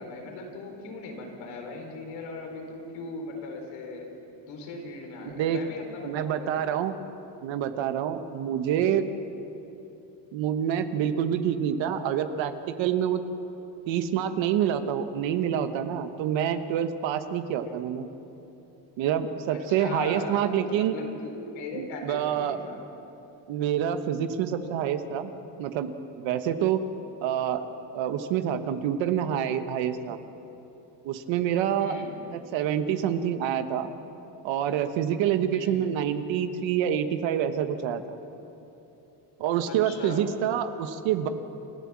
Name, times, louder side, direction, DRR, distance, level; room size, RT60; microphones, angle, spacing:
voice 1, 0.0-4.1 4.5-6.6 17.6-17.9 19.5-22.8 31.7-32.1 35.5-35.8 39.7-40.2, left 3 dB, 85° left, 2 dB, 4.3 m, -39 dB
voice 2, 6.0-6.9 7.4-9.0 10.3-13.2 13.9-18.1 19.0-21.0 21.8-22.6 23.5-25.3 25.6-26.8 27.2-27.7 27.9-30.2 31.0-32.0 32.3-33.9 34.4-38.0 39.4-41.3, right 9 dB, 80° right, 9 dB, 1.3 m, -27 dB
28.5 x 13.0 x 7.4 m, 3.0 s
cardioid pair, 115°, 45 cm